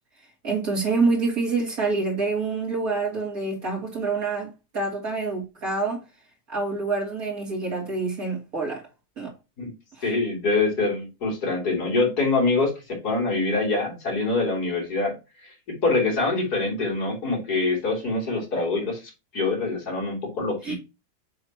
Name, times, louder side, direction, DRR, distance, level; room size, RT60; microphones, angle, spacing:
voice 1, 0.4-6.0 6.5-8.8 9.2-9.3 9.9-10.0 20.6-20.8, right 3 dB, 60° right, 3.1 m, -26 dB
voice 2, 10.0-15.1 15.4-19.0 19.3-20.8, left 3 dB, 70° left, 3.9 m, -25 dB
7.6 x 5.7 x 3.0 m
omnidirectional pair, 1.7 m